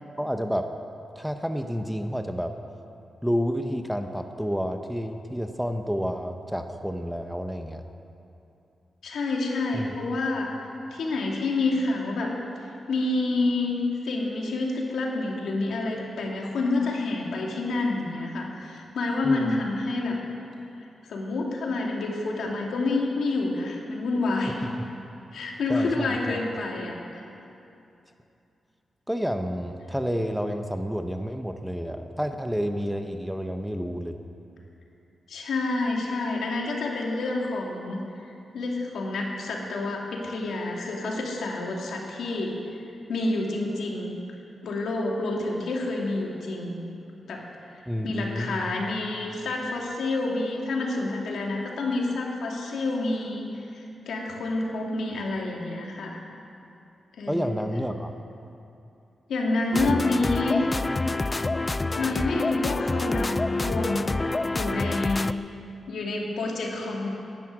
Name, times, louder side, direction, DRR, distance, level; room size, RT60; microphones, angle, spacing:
voice 1, 0.2-0.7 1.2-2.5 3.2-7.8 9.7-10.0 19.2-19.6 24.6-24.7 25.7-26.4 29.1-34.2 47.9-48.6 57.3-58.1, equal, ahead, 6 dB, 0.7 m, -30 dB
voice 2, 9.0-10.5 10.9-12.3 12.9-13.8 14.0-20.2 21.1-24.7 25.3-27.2 35.3-42.5 43.1-44.2 44.6-46.8 47.3-47.4 48.0-56.2 57.2-57.5 59.3-60.7 61.9-64.2 64.5-65.3 65.9-67.1, left 2 dB, 85° left, -1 dB, 2.7 m, -28 dB
sound 1, 59.7-65.3, left 2 dB, 20° left, 0.3 m, -27 dB
13.5 x 10.5 x 9.6 m, 2.7 s
wide cardioid pair, 165°, 0 cm